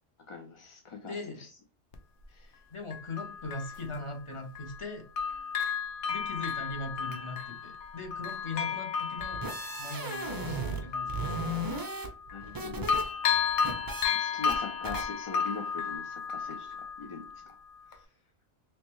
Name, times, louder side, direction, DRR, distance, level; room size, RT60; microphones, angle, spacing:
voice 1, 0.3-1.5 2.3-2.6 12.3-12.9 14.1-17.5, left 4 dB, 55° left, 3 dB, 0.3 m, -42 dB
voice 2, 1.1-1.4 2.7-5.0 6.1-9.4 9.8-11.6, left 3 dB, 30° left, 4 dB, 0.7 m, -40 dB
Bell, 1.9-2.0 2.9-4.9 5.2-12.6 12.9-17.5 17.9-18.0, left 7 dB, 75° left, 0.9 m, -33 dB
sound 1, 9.2-10.8 11.1-13.0 13.3-14.0 14.5-14.6 14.8-15.0, right 1 dB, 30° right, 0.4 m, -35 dB
3.2 x 3.1 x 3.0 m, 0.38 s
omnidirectional pair, 1.2 m